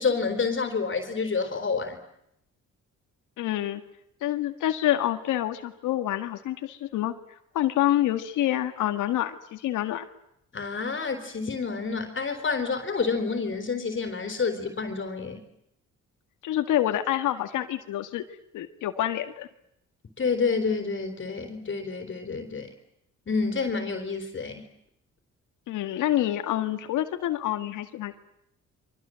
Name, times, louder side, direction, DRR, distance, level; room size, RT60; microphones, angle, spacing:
voice 1, 0.0-2.0 10.5-15.4 20.2-22.7 23.3-24.7, left 4 dB, 40° left, 7 dB, 3.8 m, -28 dB
voice 2, 3.4-3.8 4.2-7.1 7.5-10.0 16.4-18.2 18.5-19.5 25.7-28.1, left 13 dB, 85° left, 8 dB, 2.0 m, -27 dB
28.5 x 24.0 x 7.7 m, 0.78 s
cardioid pair, 90°, 30 cm